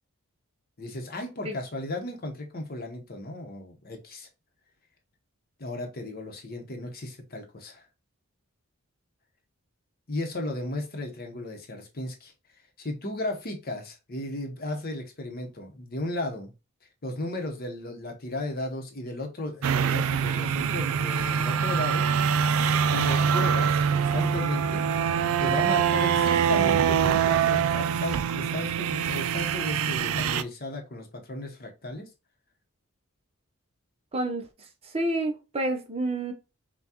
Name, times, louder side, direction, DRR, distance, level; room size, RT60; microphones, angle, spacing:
voice 1, 0.8-4.3 5.6-7.8 10.1-12.3 12.8-16.5 17.0-22.1 22.9-24.9 25.4-32.1, left 1 dB, 40° left, 0.8 m, -35 dB
sound 1, 19.6-30.4, right 7 dB, 70° right, 0.3 m, -24 dB
voice 2, 34.1-34.4 34.8-36.3, right 1 dB, 25° right, 0.6 m, -28 dB
5.7 x 2.3 x 2.8 m
head